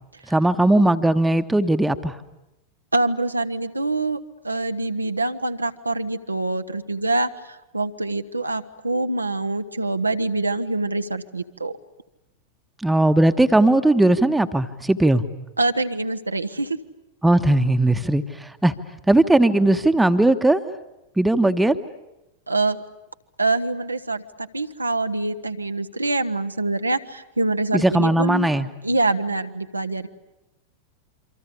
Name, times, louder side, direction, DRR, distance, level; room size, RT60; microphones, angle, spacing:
voice 1, 0.3-2.1 12.8-15.2 17.2-18.7 19.1-20.6 21.2-21.8 27.7-28.7, right 1 dB, 5° right, 9 dB, 1.2 m, -18 dB
voice 2, 2.9-11.7 15.6-16.8 22.5-22.8 23.4-28.5 28.8-30.1, right 2 dB, 80° right, 8 dB, 1.1 m, -25 dB
27.5 x 25.0 x 8.5 m, 0.95 s
figure-of-eight pair, 90°, 0 cm